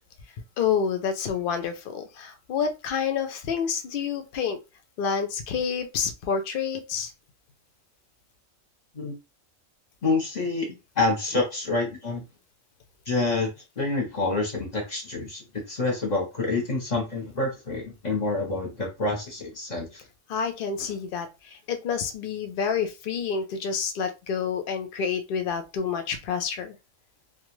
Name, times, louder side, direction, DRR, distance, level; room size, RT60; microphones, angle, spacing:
voice 1, 0.6-4.6 5.0-7.1 20.3-26.7, left 6 dB, 65° left, 7 dB, 0.5 m, -28 dB
voice 2, 10.0-10.7 11.0-12.3 13.1-13.5 13.8-20.0, left 3 dB, 35° left, 0 dB, 0.8 m, -27 dB
2.4 x 2.3 x 3.0 m, 0.27 s
omnidirectional pair, 1.4 m